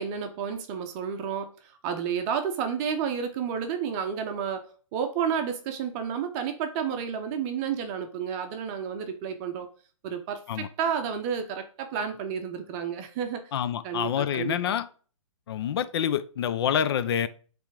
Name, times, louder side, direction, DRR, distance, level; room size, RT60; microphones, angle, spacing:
voice 1, 0.0-9.7 10.0-13.4 13.8-14.6, right 7 dB, 25° right, 0.8 m, -31 dB
voice 2, 13.5-14.9 15.5-17.3, left 9 dB, 50° left, 0.7 m, -27 dB
8.2 x 3.4 x 4.7 m
hypercardioid pair, 145°, 17 cm